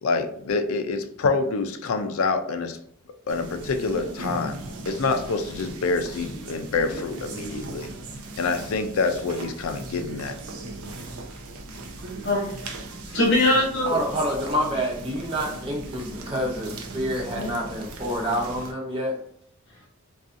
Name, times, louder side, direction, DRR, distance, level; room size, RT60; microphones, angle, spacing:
voice 1, 0.0-2.8 3.3-4.6 4.9-7.9 8.4-10.3, left 4 dB, 80° left, 7 dB, 0.4 m, -26 dB
sound 1, 3.3-18.7, right 2 dB, 90° right, 0.5 m, -38 dB
voice 2, 12.2-13.9 17.3-17.5, left 1 dB, 55° left, -3 dB, 1.1 m, -23 dB
voice 3, 13.8-19.2, equal, 25° right, -1 dB, 0.5 m, -28 dB
2.6 x 2.3 x 2.5 m, 0.69 s
head